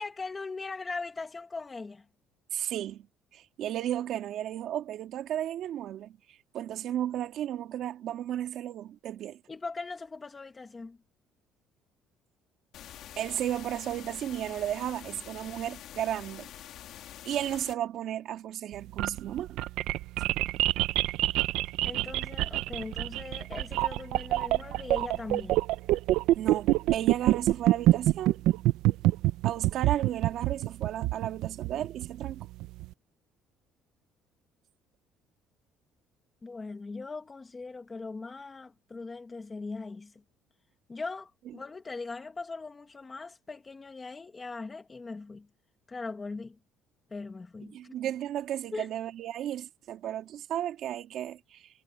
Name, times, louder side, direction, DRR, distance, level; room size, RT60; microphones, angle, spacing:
voice 1, 0.0-2.0 9.5-11.0 21.8-25.6 36.4-40.1 40.9-45.5 45.9-46.6 47.1-48.0 48.7-48.9, left 3 dB, 15° left, 1.6 m, -40 dB
voice 2, 2.5-3.1 3.3-6.2 6.5-9.4 13.2-16.5 17.2-19.6 26.3-28.4 29.4-32.4 47.7-51.7, right 11 dB, 55° right, 3.1 m, -34 dB
sound 1, 12.7-17.7, left 12 dB, 55° left, 3.3 m, -46 dB
sound 2, 18.7-32.9, right 16 dB, 75° right, 0.6 m, -26 dB
cardioid pair, 155°, 0 cm